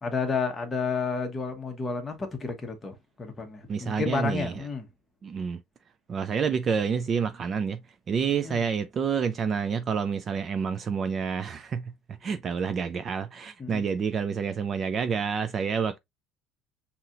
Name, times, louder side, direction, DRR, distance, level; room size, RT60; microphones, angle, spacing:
voice 1, 0.0-4.9 8.4-8.6 13.6-13.8, left 5 dB, 15° left, 1.0 m, -31 dB
voice 2, 3.7-4.6 5.2-5.6 6.1-7.8 8.1-16.0, right 6 dB, 30° right, 0.3 m, -28 dB
5.7 x 2.8 x 2.5 m
cardioid pair, 155°, 0 cm